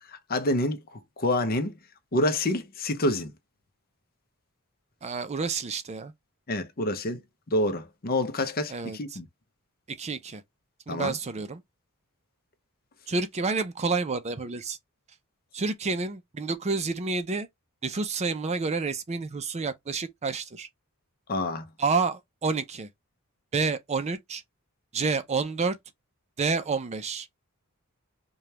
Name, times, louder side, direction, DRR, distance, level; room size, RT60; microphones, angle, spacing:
voice 1, 0.1-0.8 1.2-1.7 2.1-3.3 6.5-7.2 7.5-9.2 10.9-11.2 21.3-21.7, left 1 dB, 45° left, 0.7 m, -27 dB
voice 2, 5.0-6.1 8.7-9.0 10.0-10.4 10.9-11.6 13.1-14.8 15.5-17.5 17.8-20.7 21.8-22.9 23.5-24.4 24.9-25.8 26.4-27.3, right 4 dB, 30° right, 0.5 m, -29 dB
5.0 x 2.3 x 2.8 m
head